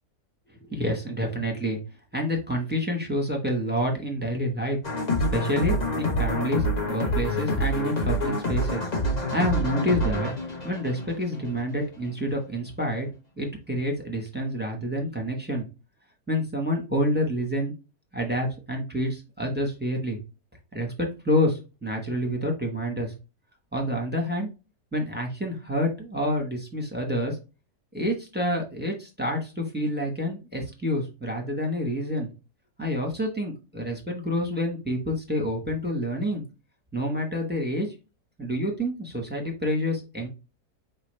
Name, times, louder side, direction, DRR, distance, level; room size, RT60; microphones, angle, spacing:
voice 1, 0.7-1.8 2.1-4.8 5.3-8.9 9.3-10.3 10.6-13.1 13.4-15.7 16.3-17.7 18.1-20.2 20.7-23.1 23.7-24.5 24.9-27.4 27.9-32.3 32.8-36.4 36.9-37.9 38.4-40.3, equal, 10° right, 1 dB, 0.9 m, -28 dB
sound 1, 4.8-11.6, equal, 30° left, 0.9 m, -27 dB
4.8 x 3.3 x 3.1 m, 0.29 s
omnidirectional pair, 1.7 m